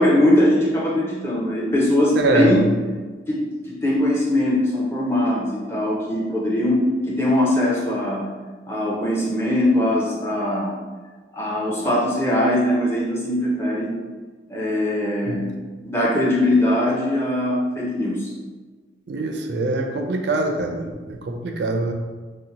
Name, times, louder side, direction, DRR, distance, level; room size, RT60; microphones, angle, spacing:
voice 1, 0.0-2.7 3.3-3.4 3.7-8.3 8.6-10.8 11.3-14.0 14.5-15.5 15.8-18.3, left 1 dB, 15° left, -5 dB, 0.5 m, -21 dB
voice 2, 2.2-2.6 15.3-15.4 19.1-21.9, right 2 dB, 75° right, 3 dB, 0.4 m, -23 dB
2.7 x 2.1 x 3.8 m, 1.4 s
head